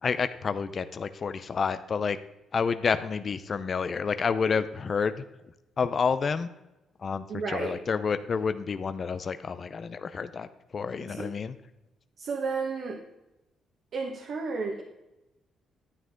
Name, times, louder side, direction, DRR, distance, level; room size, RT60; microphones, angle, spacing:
voice 1, 0.0-2.2 2.5-5.2 5.8-6.5 7.0-10.5 10.7-11.5, left 5 dB, 45° left, 11 dB, 0.5 m, -29 dB
voice 2, 7.3-7.8 11.1-11.3 12.2-13.0 13.9-14.8, right 4 dB, 60° right, 1 dB, 1.4 m, -32 dB
11.0 x 9.2 x 3.8 m, 0.96 s
cardioid pair, 90°, 0 cm